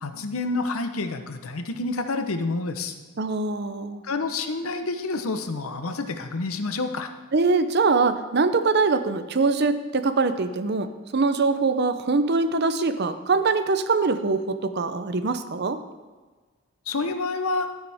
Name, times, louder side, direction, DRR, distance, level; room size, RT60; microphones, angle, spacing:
voice 1, 0.0-2.9 4.0-7.1 16.9-17.7, left 3 dB, 85° left, 8 dB, 0.8 m, -28 dB
voice 2, 3.2-4.0 7.3-15.8, right 4 dB, 50° right, 10 dB, 0.6 m, -23 dB
12.5 x 9.0 x 3.5 m, 1.3 s
head